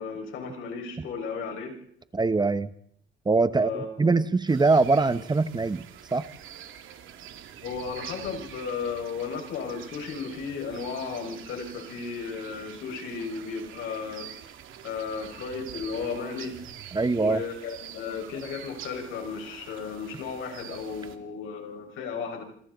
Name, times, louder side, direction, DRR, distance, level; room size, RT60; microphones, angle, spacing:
voice 1, 0.0-1.8 3.6-4.1 7.6-14.3 14.8-16.6 17.1-22.4, left 5 dB, 85° left, 3 dB, 5.7 m, -34 dB
voice 2, 2.1-2.7 3.2-5.8 6.1-6.3 16.9-17.4, right 3 dB, 20° right, 13 dB, 1.0 m, -23 dB
sound 1, 4.5-21.2, right 10 dB, 85° right, 2.5 m, -46 dB
27.0 x 26.5 x 4.0 m, 0.67 s
cardioid pair, 90°, 20 cm